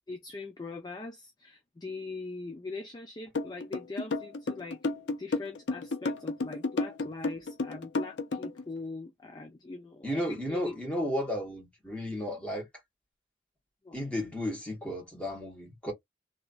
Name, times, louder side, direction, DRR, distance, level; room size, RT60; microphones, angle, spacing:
voice 1, 0.1-4.8 5.2-10.8 13.8-14.0, left 3 dB, 20° left, 0.4 m, -42 dB
sound 1, 3.3-8.6, left 3 dB, 75° left, 0.6 m, -31 dB
voice 2, 10.0-12.7 13.9-15.9, left 1 dB, 5° left, 1.6 m, -33 dB
2.9 x 2.7 x 2.4 m
head